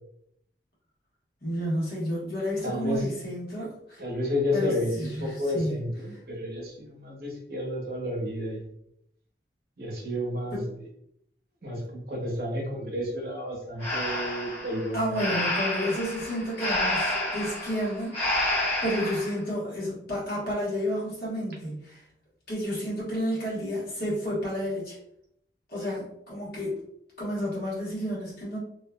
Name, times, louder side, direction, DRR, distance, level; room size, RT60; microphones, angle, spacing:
voice 1, 1.4-4.0 4.5-5.8 10.5-10.7 14.9-18.4 18.8-22.0 22.5-25.0 25.7-26.8 27.2-28.6, equal, 55° left, -7 dB, 1.3 m, -31 dB
voice 2, 2.6-3.1 4.0-8.6 9.8-10.8 11.6-15.3, left 1 dB, 55° right, -2 dB, 0.8 m, -31 dB
Breathing, 13.8-19.3, left 1 dB, 35° left, 1.0 m, -29 dB
2.9 x 2.3 x 2.2 m, 0.74 s
head